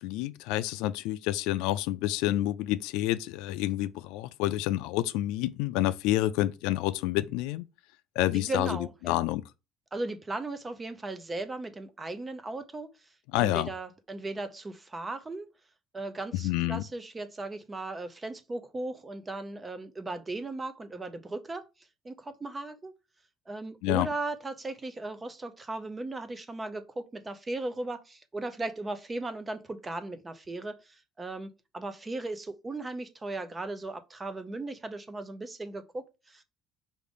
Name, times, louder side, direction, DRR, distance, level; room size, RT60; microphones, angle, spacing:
voice 1, 0.0-7.7 8.2-8.8 9.1-9.4 13.3-13.7 16.4-16.8 23.8-24.1, left 15 dB, 80° left, 0.3 m, -28 dB
voice 2, 8.3-9.2 9.9-12.9 13.4-15.5 15.9-21.6 22.0-22.9 23.5-36.4, right 2 dB, 15° right, 0.4 m, -37 dB
5.0 x 2.5 x 3.4 m
cardioid pair, 180°, 0 cm